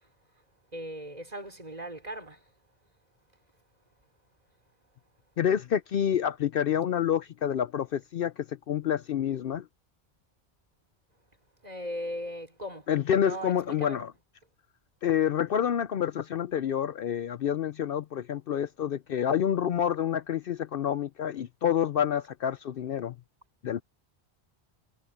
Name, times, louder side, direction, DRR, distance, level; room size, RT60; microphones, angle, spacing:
voice 1, 0.7-2.4 11.6-12.9 13.2-14.1, equal, 35° right, 3.4 m, -38 dB
voice 2, 5.4-9.6 12.9-14.1 15.0-23.1 23.6-23.8, left 9 dB, 60° left, 0.7 m, -28 dB
omnidirectional pair, 1.1 m